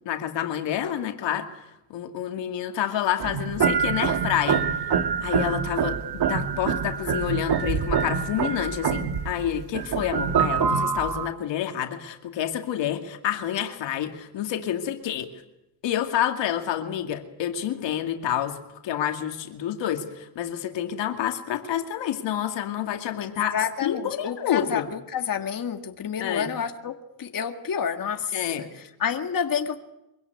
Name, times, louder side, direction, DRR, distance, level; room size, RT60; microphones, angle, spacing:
voice 1, 0.1-1.5 1.9-4.6 5.2-15.3 15.8-18.6 18.8-24.9 26.2-26.5 28.3-28.7, left 10 dB, 90° left, 5 dB, 2.4 m, -28 dB
sound 1, 3.2-11.3, right 7 dB, 60° right, 1.7 m, -25 dB
voice 2, 23.3-29.8, left 7 dB, 50° left, 6 dB, 1.9 m, -29 dB
24.5 x 16.5 x 9.5 m, 0.92 s
cardioid pair, 85°, 42 cm